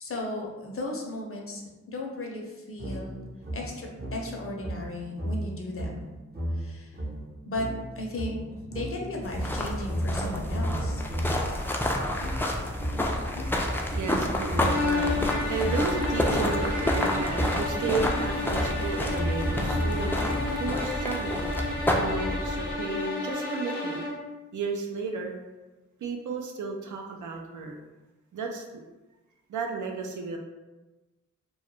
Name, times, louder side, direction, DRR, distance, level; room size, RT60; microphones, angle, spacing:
voice 1, 0.0-3.2 3.5-6.0 6.5-7.0 7.5-7.7 8.0-8.4 8.7-11.0, left 1 dB, 45° left, 0 dB, 0.6 m, -35 dB
sound 1, 2.8-11.5 12.2-20.8, equal, 30° right, 0.6 m, -34 dB
sound 2, 9.2-22.7, left 1 dB, 5° left, 0.3 m, -29 dB
voice 2, 13.7-24.0 24.5-25.4 26.0-27.8 28.3-28.6 29.5-30.4, right 4 dB, 75° right, 2 dB, 0.5 m, -33 dB
sound 3, 14.6-24.3, left 2 dB, 80° left, 0.7 m, -32 dB
2.3 x 2.0 x 3.0 m, 1.1 s
cardioid pair, 50°, 31 cm